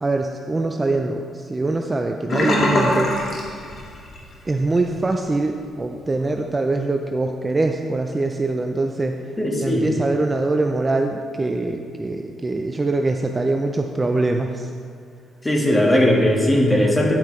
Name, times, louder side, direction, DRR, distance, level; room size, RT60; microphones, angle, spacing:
voice 1, 0.0-3.1 4.5-9.2 9.6-14.7, right 2 dB, 25° right, 4 dB, 0.5 m, -23 dB
Sink (filling or washing), 2.3-4.3 4.6-4.9 5.3-5.4, left 1 dB, 55° left, 1.9 m, -22 dB
voice 2, 9.4-9.9 15.4-17.2, left 1 dB, 15° left, -1 dB, 1.7 m, -18 dB
10.0 x 8.5 x 3.2 m, 2.2 s
cardioid pair, 90°, 0 cm